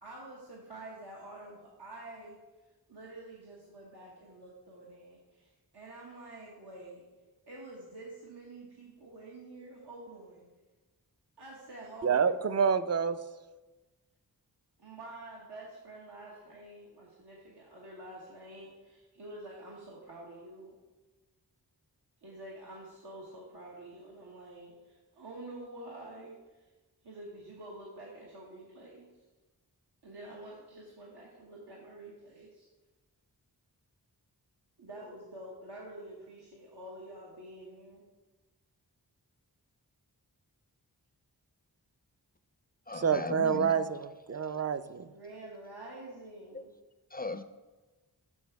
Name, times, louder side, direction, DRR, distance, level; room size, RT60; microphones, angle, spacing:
voice 1, 0.0-7.0 7.5-10.4 11.4-12.4 14.8-20.7 22.2-26.7 27.0-29.1 30.0-32.7 34.8-38.0 45.1-46.7, right 1 dB, 85° right, -4 dB, 1.3 m, -48 dB
voice 2, 12.0-13.2 42.9-45.1, right 6 dB, 40° right, 13 dB, 0.4 m, -28 dB
voice 3, 42.9-43.7 47.1-47.4, left 3 dB, 25° left, 10 dB, 0.3 m, -38 dB
6.6 x 6.3 x 4.6 m, 1.2 s
wide cardioid pair, 60°, 39 cm